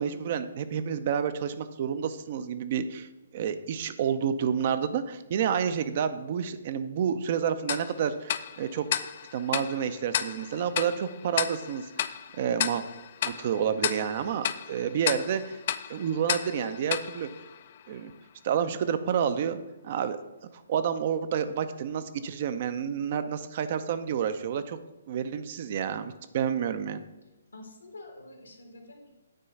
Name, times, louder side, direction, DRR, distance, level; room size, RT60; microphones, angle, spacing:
voice 1, 0.0-3.1 3.3-8.9 9.3-12.8 13.2-15.6 15.9-17.3 17.9-18.1 18.4-19.6 19.8-20.2 20.5-24.8 25.1-27.0, right 8 dB, 45° right, 11 dB, 0.6 m, -29 dB
Tick-tock, 7.7-18.1, left 9 dB, 50° left, 0.4 m, -34 dB
voice 2, 27.5-29.1, left 2 dB, 85° left, 2 dB, 1.8 m, -47 dB
9.0 x 3.8 x 5.5 m, 0.98 s
figure-of-eight pair, 140°, 0 cm